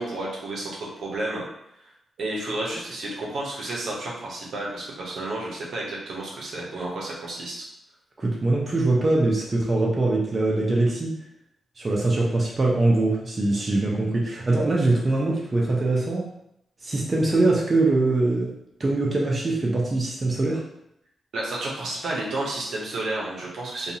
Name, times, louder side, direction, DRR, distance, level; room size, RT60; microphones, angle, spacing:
voice 1, 0.0-1.4 2.2-7.7 21.3-23.9, right 2 dB, 75° right, -4 dB, 0.8 m, -31 dB
voice 2, 8.2-11.1 11.8-16.2 16.8-18.5 18.8-20.6, right 2 dB, 40° right, -3 dB, 0.6 m, -22 dB
2.6 x 2.4 x 2.8 m, 0.79 s
supercardioid pair, 55°, 0 cm